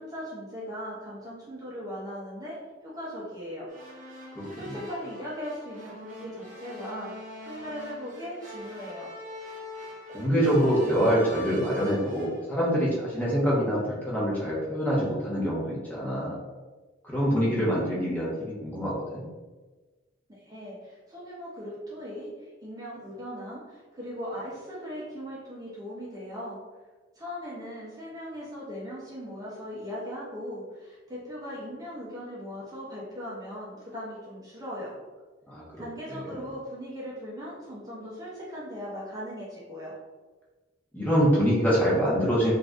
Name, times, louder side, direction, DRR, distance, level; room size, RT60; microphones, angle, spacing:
voice 1, 0.0-3.7 4.6-7.1 7.5-9.1 20.4-26.6 27.1-34.9 35.8-40.0, equal, 20° right, -7 dB, 0.8 m, -39 dB
sound 1, 3.7-12.4, left 1 dB, 45° right, 1.0 m, -44 dB
voice 2, 4.3-4.8 10.1-16.4 17.0-19.2 35.5-35.8 36.1-36.2 40.9-42.5, equal, 10° left, -7 dB, 1.1 m, -25 dB
3.7 x 2.6 x 3.6 m, 1.3 s
head